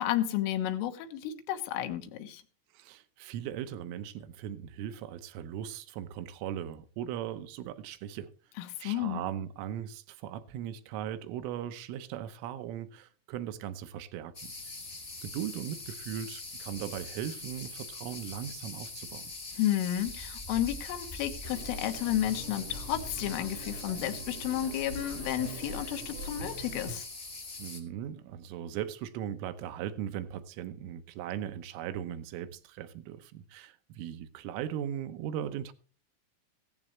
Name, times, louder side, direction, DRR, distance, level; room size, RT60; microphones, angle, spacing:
voice 1, 0.0-2.4 8.6-9.2 19.6-27.1, left 12 dB, 75° left, 3.8 m, -32 dB
voice 2, 2.7-8.3 8.8-14.7 15.2-19.3 27.6-35.7, right 10 dB, 80° right, 3.4 m, -38 dB
sound 1, 14.3-27.8, left 2 dB, 30° left, 1.1 m, -43 dB
sound 2, 21.4-27.0, right 2 dB, 50° right, 1.5 m, -43 dB
16.5 x 14.5 x 3.2 m
omnidirectional pair, 5.9 m